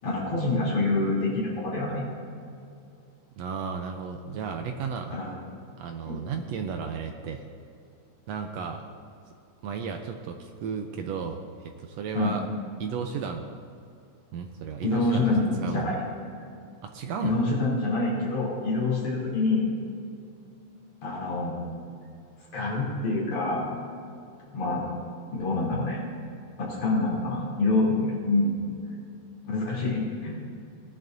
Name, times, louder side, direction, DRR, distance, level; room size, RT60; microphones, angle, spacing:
voice 1, 0.0-2.1 5.1-5.4 6.1-6.2 12.1-12.4 14.8-16.0 17.2-19.7 21.0-21.7 22.5-23.7 24.5-24.9 25.3-26.0 26.6-28.6 29.4-30.3, left 2 dB, 70° left, -6 dB, 4.6 m, -26 dB
voice 2, 3.4-5.2 5.8-7.4 8.3-8.8 9.6-12.5 12.8-13.4 14.3-15.9 16.8-17.4, right 6 dB, 80° right, 4 dB, 1.5 m, -34 dB
19.0 x 10.5 x 2.7 m, 2.5 s
omnidirectional pair, 3.6 m